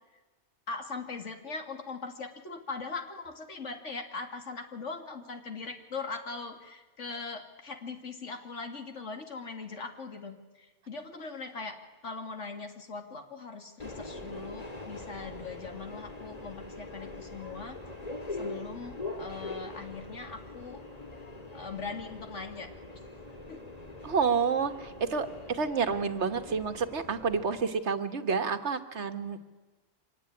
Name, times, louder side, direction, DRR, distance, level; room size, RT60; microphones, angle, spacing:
voice 1, 0.7-11.8 12.0-17.8 18.4-20.8 21.5-22.7 23.5-23.6, left 4 dB, 85° left, 5 dB, 2.5 m, -40 dB
Subway metro underground, 13.8-27.6, left 2 dB, 35° left, 2.5 m, -43 dB
voice 2, 24.0-29.4, right 5 dB, 70° right, 9 dB, 1.6 m, -29 dB
25.0 x 18.0 x 9.9 m, 1.2 s
omnidirectional pair, 1.2 m